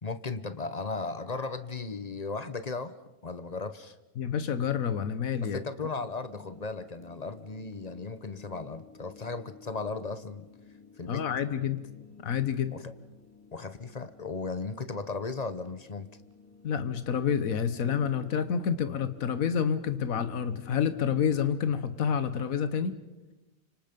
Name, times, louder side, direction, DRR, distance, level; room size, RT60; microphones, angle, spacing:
voice 1, 0.0-2.9 3.2-4.0 5.4-10.4 11.0-11.2 12.8-12.9 13.5-16.1, left 4 dB, 35° left, 11 dB, 0.9 m, -36 dB
voice 2, 4.2-5.6 11.1-11.8 12.2-12.8 16.6-23.0, left 7 dB, 75° left, 11 dB, 1.6 m, -28 dB
sound 1, 6.0-21.8, left 4 dB, 10° left, 2.9 m, -54 dB
29.5 x 26.0 x 5.3 m, 1.1 s
omnidirectional pair, 1.5 m